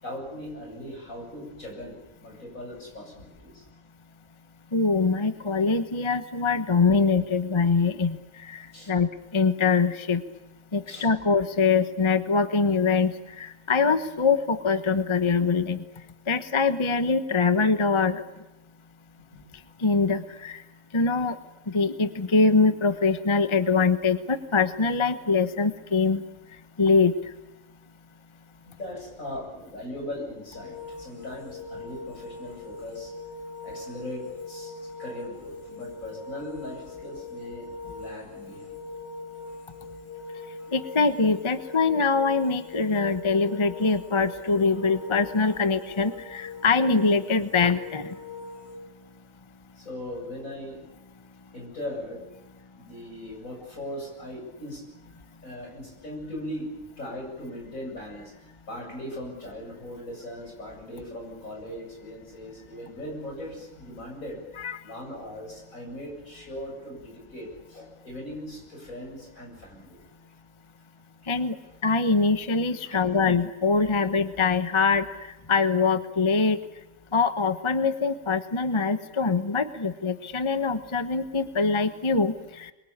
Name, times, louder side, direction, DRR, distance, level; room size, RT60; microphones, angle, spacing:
voice 1, 0.0-3.7 8.7-8.9 10.9-11.1 19.3-19.4 28.7-33.1 33.6-38.8 49.8-50.8 51.5-52.2 52.8-55.2 55.4-64.4 64.8-70.0 71.2-71.3 72.8-73.2 74.0-74.1, left 1 dB, 75° left, 0 dB, 8.7 m, -39 dB
voice 2, 4.7-10.2 10.7-15.8 16.3-18.2 19.8-20.6 20.9-21.4 21.7-26.2 26.8-27.1 40.7-48.1 64.6-64.8 71.3-71.5 71.8-76.6 77.1-82.7, left 4 dB, 25° left, 10 dB, 1.0 m, -23 dB
sound 1, 30.5-48.8, left 3 dB, 45° left, 6.3 m, -41 dB
27.0 x 22.5 x 8.7 m, 1.0 s
omnidirectional pair, 1.4 m